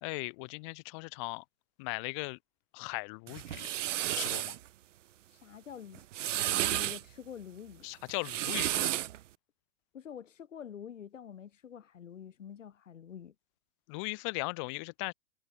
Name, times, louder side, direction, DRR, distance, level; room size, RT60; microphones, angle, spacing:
voice 1, 0.0-1.4 1.8-2.4 2.7-3.7 4.1-4.6 7.8-8.9 13.9-15.1, left 31 dB, 25° left, 0.4 m, -38 dB
sound 1, 3.3-4.6 5.9-7.0 8.1-9.2, right 13 dB, 75° right, 0.6 m, -32 dB
voice 2, 5.3-7.9 9.9-13.3, left 8 dB, 85° left, 1.9 m, -47 dB
hypercardioid pair, 130°, 37 cm